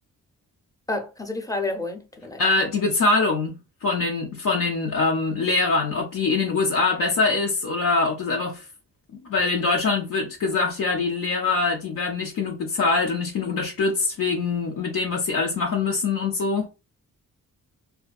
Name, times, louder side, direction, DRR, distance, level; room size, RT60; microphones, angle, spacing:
voice 1, 0.9-2.4, left 2 dB, 10° left, 0.6 m, -29 dB
voice 2, 2.4-8.6 9.1-16.7, left 3 dB, 70° left, 0.6 m, -24 dB
2.6 x 2.2 x 2.2 m
cardioid pair, 65°, 33 cm